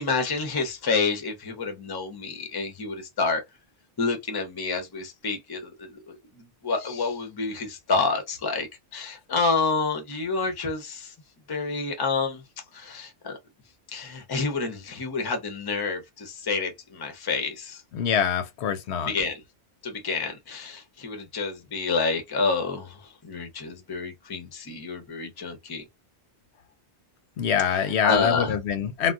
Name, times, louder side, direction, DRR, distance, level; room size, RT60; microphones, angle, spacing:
voice 1, 0.0-3.4 4.0-8.7 8.9-11.1 11.5-12.4 12.7-13.4 13.9-17.8 19.1-19.4 19.8-25.8 27.7-28.6, left 4 dB, 30° left, 0.5 m, -29 dB
voice 2, 17.9-19.1 27.4-29.1, left 7 dB, 85° left, 0.9 m, -24 dB
2.3 x 2.1 x 3.5 m
omnidirectional pair, 1.1 m